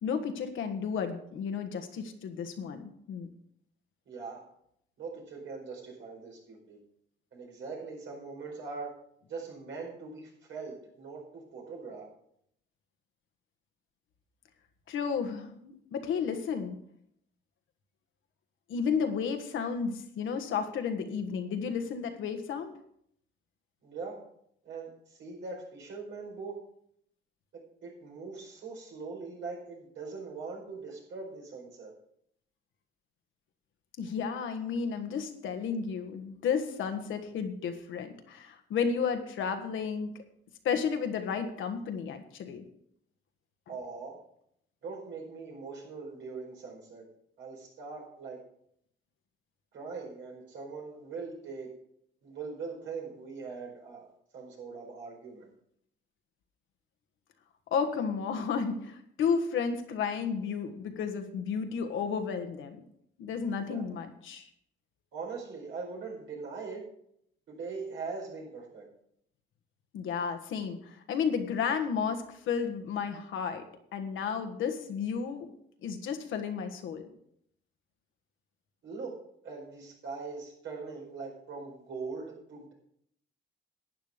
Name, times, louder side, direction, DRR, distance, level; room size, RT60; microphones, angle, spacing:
voice 1, 0.0-3.3 14.9-16.8 18.7-22.7 34.0-40.1 40.6-42.6 57.7-62.8 63.2-64.5 69.9-73.6 73.9-75.5 75.8-77.0, left 6 dB, 80° left, 6 dB, 1.5 m, -32 dB
voice 2, 4.1-4.4 5.0-6.8 7.3-8.9 9.3-12.1 23.8-24.2 24.6-26.6 27.5-31.9 43.7-44.2 44.8-47.1 47.4-48.4 49.7-51.7 52.2-54.1 54.3-55.5 63.7-63.9 65.1-66.9 67.5-68.9 78.8-79.1 79.4-82.7, right 4 dB, 75° right, -1 dB, 4.7 m, -41 dB
11.5 x 9.3 x 5.1 m, 0.71 s
cardioid pair, 90°, 20 cm